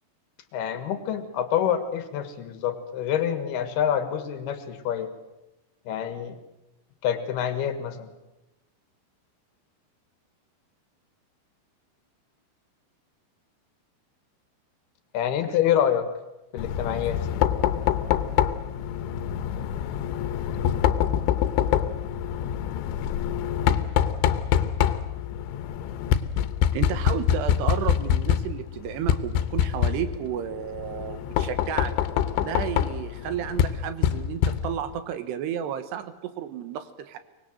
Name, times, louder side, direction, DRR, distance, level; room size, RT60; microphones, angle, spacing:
voice 1, 0.5-5.1 5.9-6.4 7.0-8.1 15.1-16.1 16.5-17.3, left 9 dB, 65° left, 10 dB, 3.3 m, -26 dB
Knock, 16.6-35.0, left 10 dB, 90° left, 3.4 m, -25 dB
voice 2, 26.7-31.9 32.4-37.2, right 9 dB, 75° right, 11 dB, 3.1 m, -32 dB
24.5 x 21.0 x 7.8 m, 0.97 s
omnidirectional pair, 5.2 m